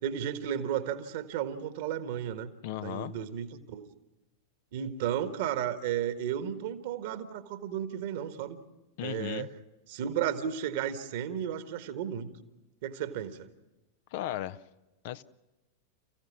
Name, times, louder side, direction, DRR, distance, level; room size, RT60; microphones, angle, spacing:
voice 1, 0.0-3.9 4.7-8.6 9.0-9.5 9.9-12.3 12.8-13.5, right 9 dB, 50° right, 10 dB, 1.6 m, -33 dB
voice 2, 2.6-3.1 9.0-9.5 14.1-14.6 15.0-15.2, left 13 dB, 50° left, 13 dB, 0.7 m, -35 dB
29.5 x 15.5 x 7.4 m, 1.1 s
figure-of-eight pair, 90°, 0 cm